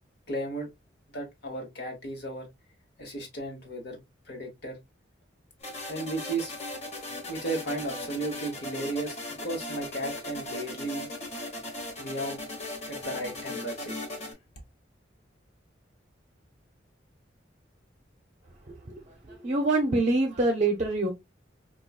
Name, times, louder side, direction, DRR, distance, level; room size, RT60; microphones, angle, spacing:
voice 1, 0.3-0.7 1.1-2.5 3.0-4.0 4.3-4.8 5.9-6.6 7.3-11.1 12.0-12.4 12.9-13.9, right 2 dB, 60° left, 1.2 m, -34 dB
sound 1, 5.6-14.3, left 2 dB, 35° left, 1.1 m, -38 dB
voice 2, 19.4-21.1, right 2 dB, 40° right, 0.6 m, -24 dB
4.5 x 2.3 x 2.3 m
head